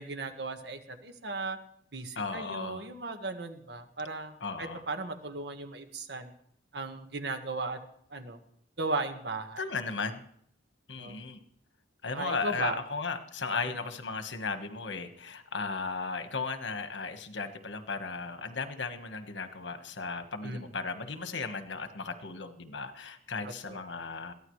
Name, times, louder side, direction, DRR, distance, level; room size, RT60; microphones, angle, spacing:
voice 1, 0.0-1.6 1.9-6.3 6.7-7.8 8.1-8.4 8.8-9.6 11.0-11.2 12.1-12.8 13.7-13.8 20.4-20.7 23.4-23.8, right 3 dB, 65° right, 6 dB, 1.5 m, -36 dB
voice 2, 2.2-2.9 4.4-4.8 9.6-10.2 10.9-11.4 12.0-24.3, left 4 dB, 85° left, 8 dB, 1.4 m, -36 dB
21.5 x 15.0 x 3.2 m, 0.69 s
head